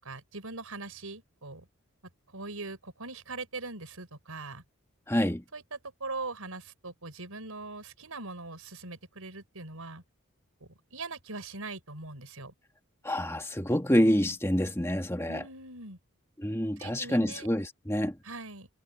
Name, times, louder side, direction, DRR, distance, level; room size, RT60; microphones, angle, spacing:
voice 1, 0.0-1.7 2.3-4.6 5.5-10.0 10.6-12.5 15.3-16.0 16.8-17.5 18.2-18.7, right 3 dB, 90° right, 5.4 m, -41 dB
voice 2, 5.1-5.4 13.0-15.4 16.4-18.2, equal, 10° left, 1.7 m, -27 dB
head